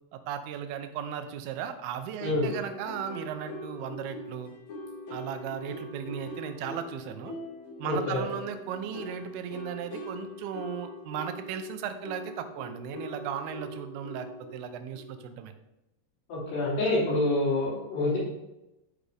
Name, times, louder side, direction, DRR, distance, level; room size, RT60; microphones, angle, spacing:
voice 1, 0.1-4.5 5.1-7.3 7.8-15.5, right 9 dB, 80° right, 8 dB, 2.6 m, -36 dB
sound 1, 2.4-15.3, left 1 dB, 50° left, 2.7 m, -42 dB
voice 2, 7.8-8.2 16.3-18.2, left 2 dB, 85° left, -9 dB, 5.3 m, -27 dB
11.5 x 5.0 x 3.4 m, 0.93 s
omnidirectional pair, 4.6 m